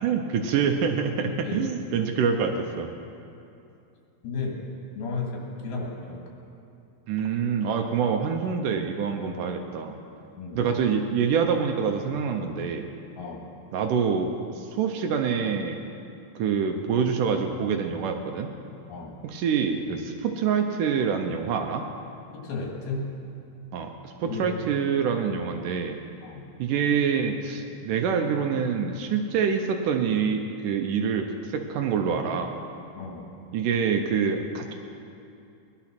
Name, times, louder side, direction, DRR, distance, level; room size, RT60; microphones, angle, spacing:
voice 1, 0.0-2.9 7.1-10.0 10.6-12.9 13.7-15.8 16.4-18.5 19.2-21.9 23.7-26.0 26.6-32.5 33.5-34.7, right 6 dB, 75° right, 4 dB, 2.1 m, -26 dB
voice 2, 4.2-4.6 5.0-6.2 10.4-10.7 13.2-13.5 18.9-19.2 22.3-23.1 24.2-24.5 26.2-26.4 33.0-33.3, left 4 dB, 80° left, -1 dB, 4.1 m, -33 dB
19.0 x 11.0 x 6.0 m, 2.6 s
omnidirectional pair, 4.3 m